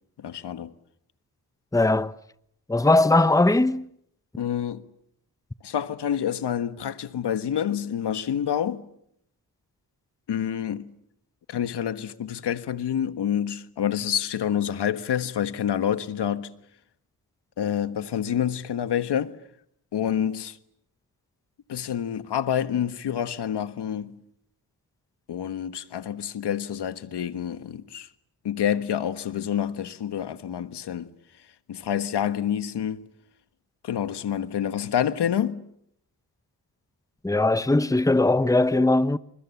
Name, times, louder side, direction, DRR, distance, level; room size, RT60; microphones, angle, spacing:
voice 1, 0.2-0.7 4.4-4.8 5.6-8.8 10.3-10.9 11.5-16.5 17.6-19.4 19.9-20.6 21.7-24.1 25.3-28.1 28.4-31.1 31.7-33.0 33.8-35.6, left 9 dB, 85° left, 1.5 m, -28 dB
voice 2, 1.7-2.2 2.7-3.9 37.2-39.2, left 2 dB, 10° left, 1.0 m, -20 dB
29.0 x 26.0 x 7.1 m
cardioid pair, 65°, 40 cm